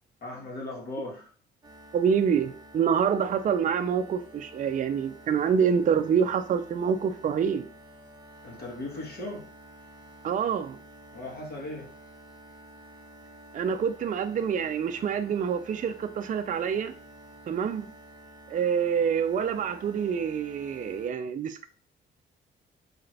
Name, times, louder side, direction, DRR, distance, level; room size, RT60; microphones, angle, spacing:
voice 1, 0.2-1.3 8.4-9.5 11.1-11.9, left 2 dB, 55° left, 1.6 m, -37 dB
sound 1, 1.6-21.1, right 1 dB, 20° right, 1.0 m, -50 dB
voice 2, 1.9-7.7 10.2-10.8 13.5-16.9 17.5-17.9 18.5-21.6, right 7 dB, 40° right, 0.4 m, -26 dB
4.8 x 2.4 x 3.3 m
cardioid pair, 90°, 20 cm